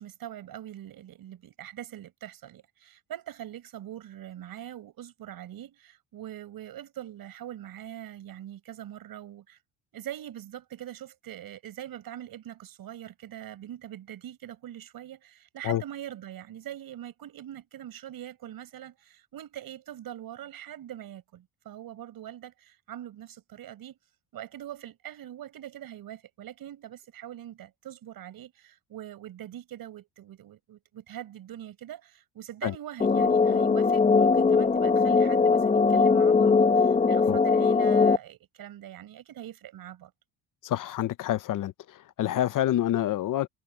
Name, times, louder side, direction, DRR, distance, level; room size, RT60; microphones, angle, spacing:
voice 1, 0.0-9.6 9.9-24.0 24.3-40.1, right 12 dB, 55° right, 5.2 m, -43 dB
sound 1, 33.0-38.2, left 4 dB, 20° left, 1.4 m, -21 dB
voice 2, 40.6-43.5, left 12 dB, 50° left, 0.8 m, -27 dB
cardioid pair, 140°, 41 cm